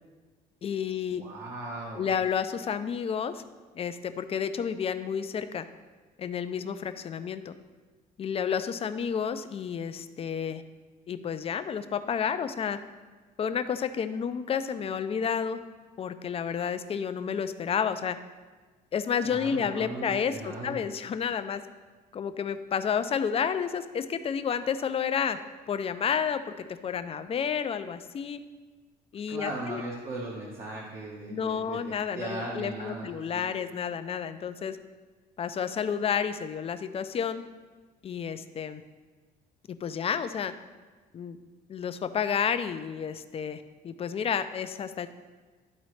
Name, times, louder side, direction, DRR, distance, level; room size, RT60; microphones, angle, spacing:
voice 1, 0.6-1.2 1.9-3.4 3.7-5.7 6.2-7.5 8.2-10.6 11.1-12.8 13.4-15.6 16.0-18.2 18.9-21.6 22.1-25.4 25.7-26.5 26.8-28.4 29.1-29.8 31.3-34.8 35.4-37.4 38.0-38.8 39.8-40.5 41.1-41.4 41.7-45.1, left 7 dB, 35° left, 11 dB, 0.4 m, -30 dB
voice 2, 1.2-2.1 19.2-20.9 29.3-33.5, right 2 dB, 60° right, -4 dB, 1.2 m, -38 dB
12.0 x 4.0 x 3.2 m, 1.3 s
cardioid pair, 110°, 17 cm